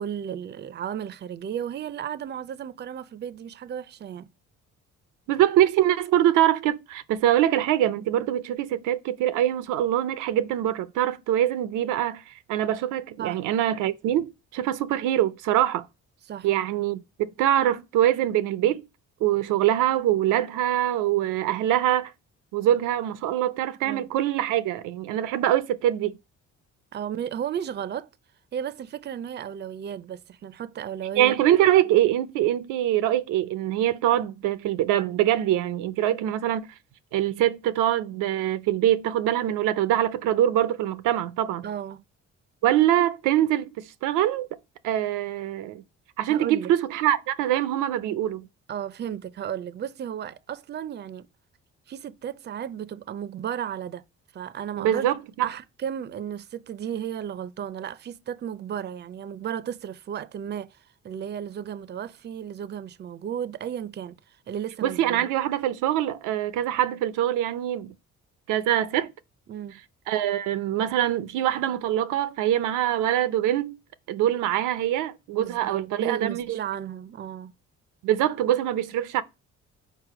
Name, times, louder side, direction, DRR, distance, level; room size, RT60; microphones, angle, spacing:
voice 1, 0.0-4.3 13.2-13.4 16.3-16.5 23.8-24.1 26.9-28.1 28.5-31.4 36.1-36.2 41.6-42.0 46.3-46.7 48.7-51.3 51.9-54.0 54.3-55.1 55.4-65.2 69.5-69.8 75.4-77.5, right 9 dB, 35° right, 0.4 m, -34 dB
voice 2, 5.3-15.9 16.4-18.8 19.2-22.1 22.5-26.2 31.2-36.6 37.1-41.7 42.6-44.5 44.8-45.8 46.2-48.5 54.8-55.5 64.8-67.9 68.5-69.1 70.1-73.8 74.1-76.5 78.0-79.2, right 12 dB, 90° right, 0.5 m, -24 dB
4.7 x 4.5 x 4.9 m
cardioid pair, 90°, 30 cm